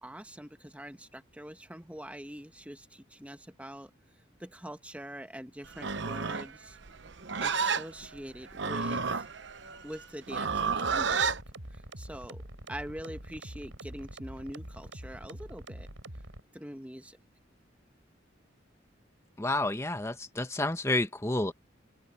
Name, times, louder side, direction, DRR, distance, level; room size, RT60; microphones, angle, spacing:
voice 1, 0.0-3.9 4.4-6.8 7.4-9.2 9.8-11.3 11.7-12.4 12.7-15.9 16.5-17.2, equal, 5° right, 1.5 m, -44 dB
Livestock farm animals working animals, 5.7-11.4, right 5 dB, 65° right, 0.9 m, -31 dB
sound 1, 10.4-16.4, right 1 dB, 85° right, 5.3 m, -45 dB
voice 2, 19.4-21.5, left 2 dB, 15° left, 1.3 m, -30 dB
open air
head